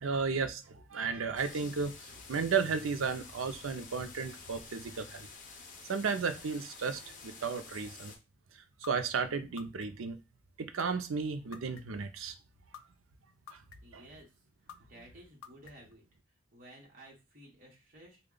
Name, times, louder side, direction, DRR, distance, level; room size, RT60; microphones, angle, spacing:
voice 1, 0.0-5.3 5.9-8.1 8.9-10.2 10.6-12.3 13.5-13.6 13.9-14.0, right 5 dB, 85° right, 0.5 m, -34 dB
sound 1, 1.4-8.2, left 4 dB, 40° left, 0.7 m, -50 dB
sound 2, 8.8-8.9 9.6-10.1 10.8-10.9 11.5-12.0 12.7-12.8 13.5-14.0 14.7-14.8 15.4-15.9, left 8 dB, 85° left, 0.4 m, -48 dB
voice 2, 13.8-14.3 14.9-16.0 16.5-18.2, right 1 dB, 40° right, 1.1 m, -54 dB
3.5 x 2.3 x 3.8 m
head